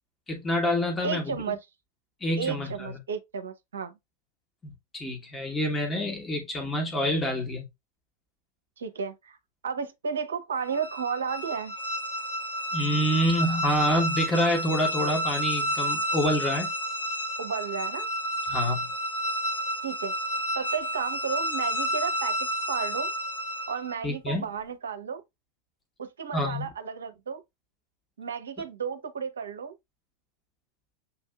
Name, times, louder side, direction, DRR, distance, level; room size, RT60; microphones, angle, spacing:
voice 1, 0.3-1.4 2.2-3.0 4.9-7.6 12.7-16.7 18.5-18.8 24.0-24.4 26.3-26.7, equal, 15° left, 1.1 m, -27 dB
voice 2, 1.0-1.6 2.4-3.9 8.8-9.4 9.6-11.7 17.4-18.1 19.8-20.1 20.5-22.4 22.7-23.1 23.7-25.2 26.0-27.4 28.2-29.8, right 6 dB, 65° right, 0.7 m, -33 dB
sound 1, 10.6-24.0, equal, 80° left, 1.7 m, -30 dB
7.1 x 2.6 x 2.3 m
figure-of-eight pair, 90°, 0 cm